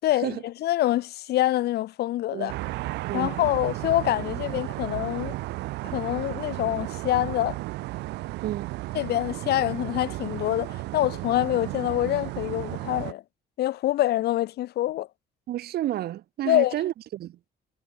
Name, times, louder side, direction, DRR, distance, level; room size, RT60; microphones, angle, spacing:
voice 1, 0.0-2.5 3.1-5.4 5.8-7.6 8.9-13.2 13.6-15.1 16.5-16.7, left 14 dB, 70° left, 5.3 m, -25 dB
sound 1, 2.5-13.1, right 19 dB, 90° right, 4.8 m, -34 dB
voice 2, 15.5-17.4, right 13 dB, 65° right, 3.2 m, -30 dB
cardioid pair, 110°, 17 cm